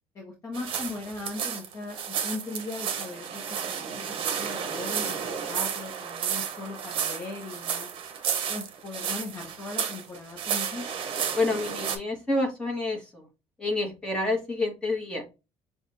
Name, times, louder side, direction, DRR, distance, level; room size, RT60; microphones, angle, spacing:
voice 1, 0.1-7.9 8.5-10.8, left 3 dB, 25° left, 0 dB, 0.9 m, -39 dB
sound 1, 0.5-12.0, right 7 dB, 50° right, 0.9 m, -32 dB
voice 2, 11.3-13.2 13.6-15.2, left 2 dB, 10° left, -1 dB, 1.3 m, -28 dB
5.9 x 2.3 x 2.6 m, 0.27 s
cardioid pair, 175°, 11 cm